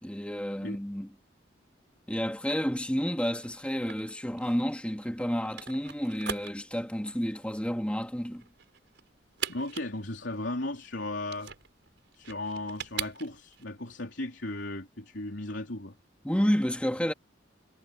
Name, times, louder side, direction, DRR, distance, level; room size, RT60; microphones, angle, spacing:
voice 1, 0.0-1.1 2.1-8.5 16.2-17.1, equal, 5° left, 2.6 m, -30 dB
sound 1, 3.4-13.6, right 8 dB, 65° right, 6.0 m, -42 dB
voice 2, 9.5-11.5 12.1-16.0, left 2 dB, 70° left, 3.6 m, -36 dB
head